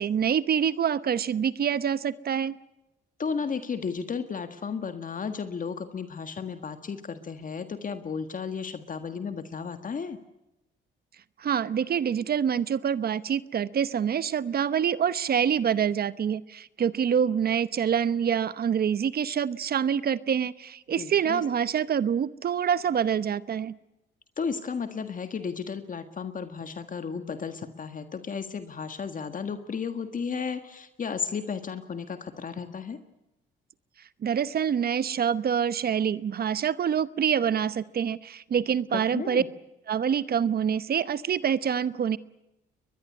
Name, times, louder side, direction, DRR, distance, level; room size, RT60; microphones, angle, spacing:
voice 1, 0.0-2.6 11.4-23.7 34.2-39.4 39.9-42.2, right 8 dB, 50° right, 16 dB, 0.9 m, -26 dB
voice 2, 3.2-10.2 21.0-21.4 24.4-33.0 39.1-39.5, left 6 dB, 40° left, 9 dB, 1.7 m, -34 dB
22.0 x 21.5 x 9.6 m, 0.92 s
cardioid pair, 90°, 20 cm